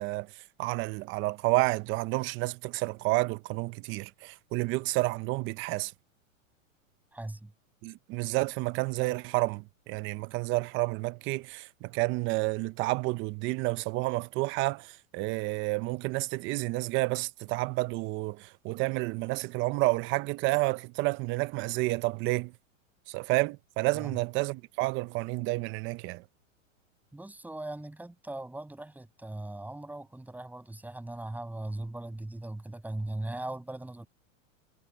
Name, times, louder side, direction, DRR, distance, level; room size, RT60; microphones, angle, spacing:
voice 1, 0.0-5.9 7.8-22.5 23.1-26.2, right 22 dB, 30° right, 0.7 m, -30 dB
voice 2, 7.1-7.5 23.9-24.1 27.1-34.1, right 1 dB, 5° right, 6.8 m, -39 dB
hypercardioid pair, 135°, 40 cm